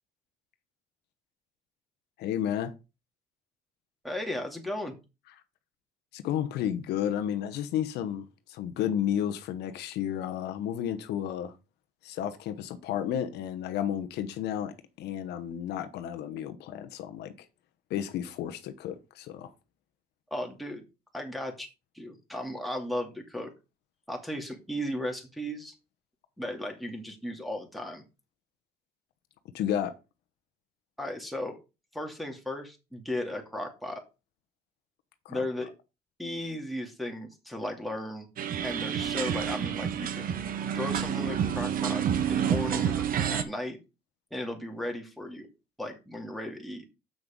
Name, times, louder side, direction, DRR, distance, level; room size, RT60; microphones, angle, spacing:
voice 1, 2.2-2.7 6.1-11.5 12.0-17.3 17.9-19.5 29.5-29.9 35.2-35.5, left 10 dB, 80° left, 1.0 m, -32 dB
voice 2, 4.0-4.9 20.3-20.8 21.1-21.7 21.9-23.5 24.1-25.8 26.4-28.0 31.0-31.6 31.9-34.0 35.3-35.7 36.2-38.3 38.6-40.4 40.7-43.8 44.3-45.5 45.8-46.8, left 1 dB, ahead, 2.5 m, -35 dB
sound 1, 38.4-43.4, right 8 dB, 55° right, 1.2 m, -29 dB
7.7 x 6.2 x 5.2 m
cardioid pair, 110°, 17 cm